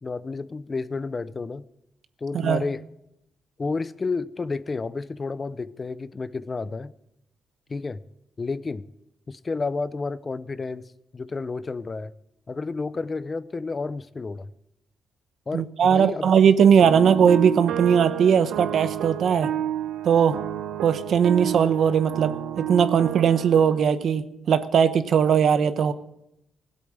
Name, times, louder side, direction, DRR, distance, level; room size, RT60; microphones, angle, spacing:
voice 1, 0.0-1.6 2.2-2.8 3.6-6.9 7.7-8.0 8.4-8.9 9.3-10.9 11.1-12.1 12.5-14.5 15.5-16.3, left 4 dB, 30° left, 0.5 m, -31 dB
voice 2, 15.5-19.5 20.0-20.4 20.8-25.9, right 7 dB, 65° right, 0.9 m, -19 dB
sound 1, 16.6-23.8, right 11 dB, 85° right, 0.7 m, -31 dB
17.0 x 8.0 x 7.4 m
cardioid pair, 105°, 0 cm